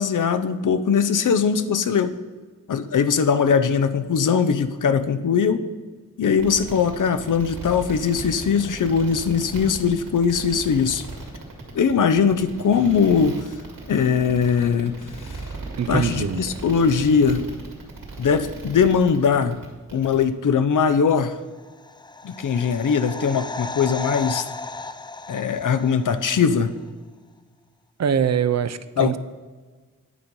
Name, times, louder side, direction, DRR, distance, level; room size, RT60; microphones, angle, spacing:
voice 1, 0.0-2.1 2.7-5.6 6.2-11.0 11.7-13.4 13.9-15.0 15.3-15.4 15.9-17.5 18.2-19.6 19.9-21.4 22.2-24.5 25.3-26.7 29.0-29.1, left 6 dB, 65° left, 11 dB, 0.6 m, -20 dB
sound 1, 6.4-20.2, right 2 dB, 80° right, 2.2 m, -37 dB
voice 2, 15.8-16.4 28.0-29.2, right 7 dB, 50° right, 13 dB, 0.5 m, -23 dB
sound 2, 21.5-26.4 26.7-26.8, left 3 dB, 15° left, 0.3 m, -35 dB
9.8 x 5.2 x 5.4 m, 1.4 s
wide cardioid pair, 90°, 33 cm